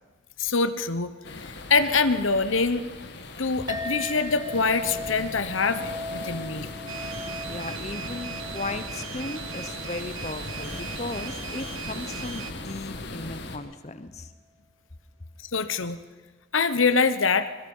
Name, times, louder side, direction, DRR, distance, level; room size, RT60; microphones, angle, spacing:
voice 1, 0.4-2.8 3.4-6.7 15.4-16.0 16.5-17.5, left 4 dB, 80° left, 11 dB, 1.1 m, -24 dB
sound 1, 1.2-13.6, left 2 dB, 55° left, 2.0 m, -39 dB
Chink clink, 3.7-12.4, left 1 dB, 20° right, 1.5 m, -39 dB
sound 2, 6.9-12.5, right 8 dB, 90° right, 1.3 m, -38 dB
voice 2, 7.5-14.3, left 2 dB, 35° left, 10 dB, 1.0 m, -36 dB
25.5 x 21.5 x 5.6 m, 1.4 s
head